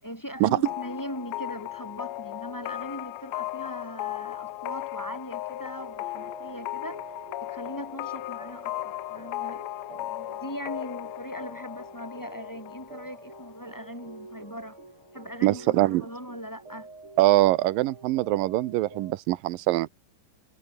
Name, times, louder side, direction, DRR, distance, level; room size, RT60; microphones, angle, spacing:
voice 1, 0.0-7.1 7.4-14.8 15.1-16.9, equal, 5° left, 4.5 m, -40 dB
sound 1, 0.7-14.2, left 16 dB, 80° left, 1.5 m, -37 dB
sound 2, 5.5-19.2, right 3 dB, 35° right, 7.4 m, -48 dB
voice 2, 15.4-16.0 17.2-19.9, right 17 dB, 90° right, 2.6 m, -23 dB
omnidirectional pair, 3.9 m